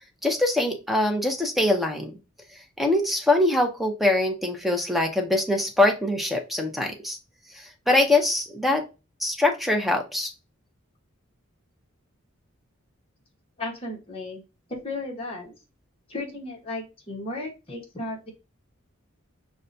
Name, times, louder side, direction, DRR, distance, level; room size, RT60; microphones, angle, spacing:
voice 1, 0.2-2.1 2.8-7.2 7.5-8.8 9.2-10.3, left 2 dB, ahead, 4 dB, 0.5 m, -23 dB
voice 2, 13.6-14.4 14.7-15.5 16.1-18.3, left 2 dB, 25° left, -1 dB, 1.0 m, -34 dB
5.4 x 2.2 x 2.6 m, 0.28 s
head